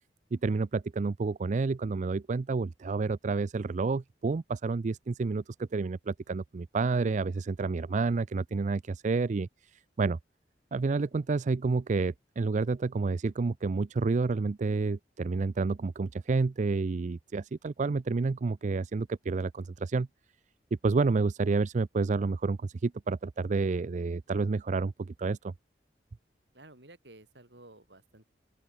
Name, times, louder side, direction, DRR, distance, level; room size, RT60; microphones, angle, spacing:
voice 1, 0.3-9.5 10.0-10.2 10.7-20.1 20.8-25.5, right 4 dB, 45° right, 0.4 m, -29 dB
voice 2, 26.5-28.3, right 2 dB, 70° right, 5.6 m, -53 dB
open air
head